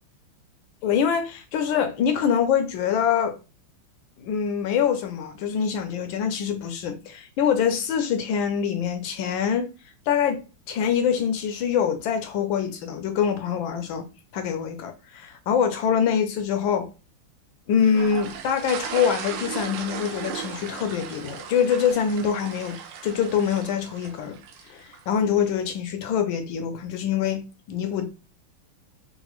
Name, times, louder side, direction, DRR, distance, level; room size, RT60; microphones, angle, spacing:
voice 1, 0.8-3.4 4.2-9.7 10.1-10.4 10.7-14.1 14.3-16.9 17.7-24.4 24.7-28.1, left 7 dB, 75° left, 1.2 m, -24 dB
sound 1, 17.8-25.1, right 8 dB, 75° right, 1.3 m, -37 dB
3.8 x 2.4 x 3.0 m
omnidirectional pair, 2.3 m